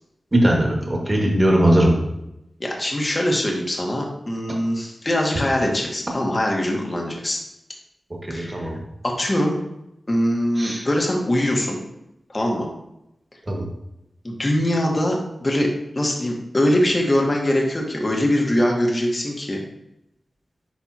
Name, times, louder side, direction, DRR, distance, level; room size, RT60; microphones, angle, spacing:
voice 1, 0.3-2.0 8.3-8.7 10.6-10.8 13.5-13.7, right 1 dB, 30° right, -1 dB, 1.8 m, -19 dB
voice 2, 2.6-7.4 8.3-8.7 9.0-9.6 10.1-11.8 12.3-12.7 14.2-15.7 15.9-19.6, left 1 dB, 30° left, 0 dB, 1.4 m, -22 dB
10.5 x 3.5 x 2.9 m, 0.86 s
wide cardioid pair, 70°, 0 cm